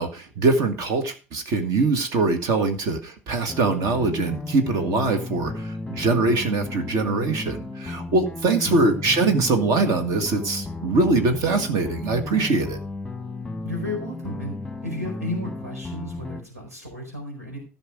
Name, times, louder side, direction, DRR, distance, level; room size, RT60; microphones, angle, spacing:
voice 1, 0.0-12.8, right 3 dB, 45° right, 7 dB, 1.7 m, -23 dB
sound 1, 3.5-16.4, left 3 dB, 5° left, 1.4 m, -34 dB
voice 2, 8.7-9.0 13.6-17.6, left 1 dB, 85° right, 2 dB, 4.6 m, -33 dB
15.0 x 6.1 x 5.0 m, 0.33 s
figure-of-eight pair, 70°, 8 cm